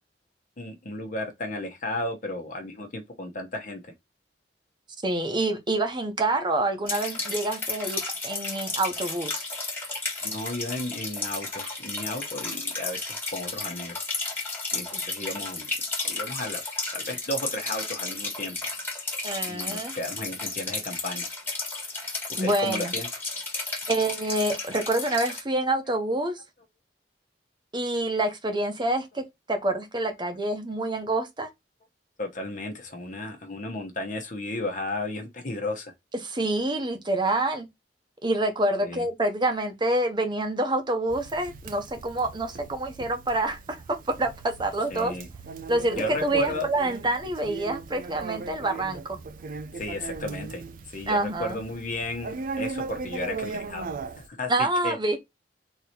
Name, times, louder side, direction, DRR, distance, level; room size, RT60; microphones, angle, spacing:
voice 1, 0.6-3.8 10.2-14.0 14.7-15.7 16.0-16.6 16.9-18.6 19.4-21.3 22.3-23.1 32.2-35.9 38.8-39.1 44.9-45.3 46.0-46.7 49.7-50.6 50.9-53.9 54.3-55.0, left 2 dB, 50° left, 1.0 m, -34 dB
voice 2, 5.0-9.4 14.9-15.0 19.2-19.9 22.4-22.9 23.9-26.4 27.7-31.5 36.2-37.7 38.2-43.6 44.1-45.1 45.7-49.2 51.1-51.6 54.5-55.2, right 2 dB, 25° right, 0.9 m, -27 dB
sound 1, 6.9-25.4, left 3 dB, 10° left, 1.5 m, -33 dB
Conversation, 41.1-54.3, right 4 dB, 50° right, 0.4 m, -38 dB
3.8 x 3.0 x 4.2 m
head